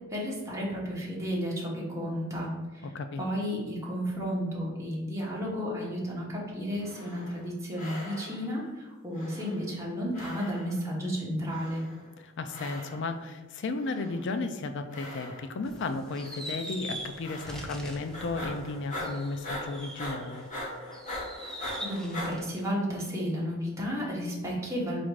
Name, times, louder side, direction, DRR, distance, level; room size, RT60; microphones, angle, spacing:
voice 1, 0.1-2.9 3.2-11.8 21.8-25.0, equal, 15° right, -4 dB, 1.0 m, -32 dB
sound 1, 6.8-7.5 7.8-8.6 9.1-9.9 10.1-10.9 11.5-12.1 12.5-13.2 13.7-14.4 14.9-15.7 16.1-16.6 17.2-17.8 18.1-22.3, left 1 dB, 40° left, 1.1 m, -41 dB
voice 2, 12.2-20.5, left 3 dB, 60° left, 8 dB, 0.4 m, -34 dB
sound 2, 15.7-20.5 20.9-22.7, equal, 5° left, 0.5 m, -42 dB
4.2 x 2.5 x 4.7 m, 1.2 s
head